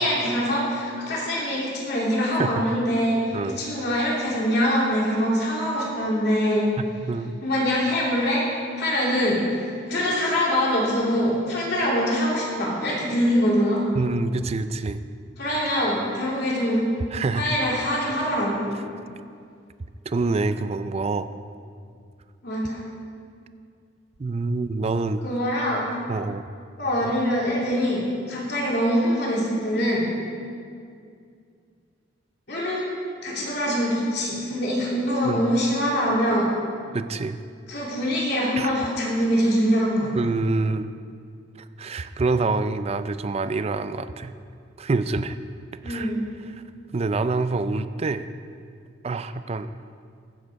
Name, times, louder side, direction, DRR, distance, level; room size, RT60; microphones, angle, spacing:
voice 1, 0.0-6.7 7.4-8.4 8.8-9.4 9.9-13.8 15.4-16.9 17.3-18.7 22.4-22.8 25.2-25.8 26.8-28.0 28.3-30.0 32.5-32.9 33.2-36.5 37.7-40.1 45.8-46.2, equal, 60° left, -5 dB, 2.9 m, -24 dB
voice 2, 13.9-15.0 17.1-17.5 20.1-21.3 24.2-25.2 26.1-26.5 27.0-27.1 35.3-35.5 36.9-37.4 38.6-38.7 40.1-40.9 41.6-44.3 44.8-45.4 45.8-46.1 46.5-46.6 46.9-48.2 49.0-49.7, right 3 dB, 35° right, 11 dB, 0.4 m, -26 dB
15.5 x 7.4 x 4.7 m, 2.3 s
head